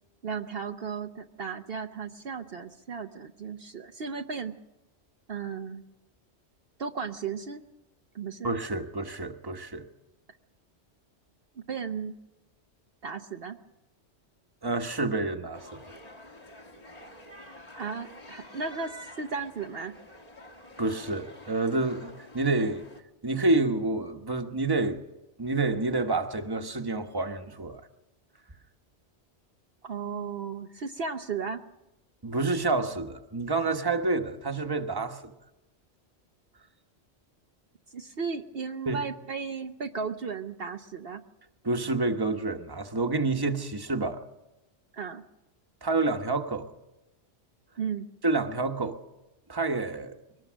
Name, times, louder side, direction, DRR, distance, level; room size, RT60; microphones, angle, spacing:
voice 1, 0.2-4.5 5.3-5.8 6.8-7.6 8.1-8.7 11.7-12.1 13.0-13.6 17.7-19.9 29.8-31.6 37.9-41.2 44.9-45.2 47.8-48.1, right 5 dB, 60° right, 1.0 m, -35 dB
voice 2, 8.4-9.9 14.6-15.8 20.8-22.8 23.2-25.0 25.4-27.8 32.2-35.3 38.9-39.0 41.6-44.2 45.8-46.7 48.2-49.0 49.5-50.1, right 3 dB, 20° right, 1.2 m, -28 dB
sound 1, 15.5-23.0, left 1 dB, 35° left, 1.6 m, -48 dB
23.0 x 19.0 x 6.3 m
omnidirectional pair, 1.2 m